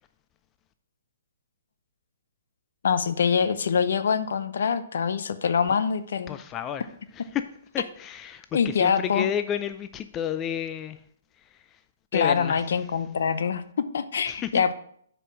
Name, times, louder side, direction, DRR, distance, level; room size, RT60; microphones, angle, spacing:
voice 1, 2.8-6.4 8.5-9.3 12.1-14.7, left 6 dB, 70° left, 12 dB, 0.7 m, -24 dB
voice 2, 6.3-6.9 7.1-7.4 7.7-11.0 11.4-11.8 12.1-12.6 14.3-14.5, left 9 dB, 20° left, 10 dB, 0.4 m, -31 dB
6.7 x 5.0 x 6.0 m, 0.64 s
hypercardioid pair, 135°, 0 cm